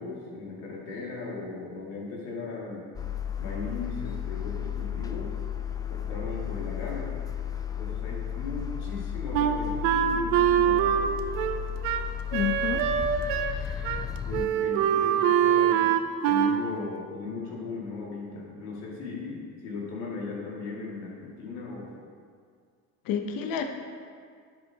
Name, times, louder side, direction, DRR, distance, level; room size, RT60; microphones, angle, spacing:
voice 1, 0.0-2.9 3.4-5.3 5.9-7.1 7.8-11.0 12.4-12.5 14.2-16.0 16.2-21.9, left 3 dB, 90° left, -4 dB, 2.4 m, -37 dB
sound 1, 2.9-14.5, left 9 dB, 10° left, 0.3 m, -34 dB
Wind instrument woodwind instrument, 9.3-13.6 13.8-14.0 14.3-16.6, right 9 dB, 85° right, 0.6 m, -24 dB
voice 2, 12.3-12.8 13.1-14.0 23.1-23.6, left 8 dB, 65° left, 5 dB, 0.9 m, -31 dB
11.0 x 7.5 x 2.9 m, 2.1 s
supercardioid pair, 100°, 37 cm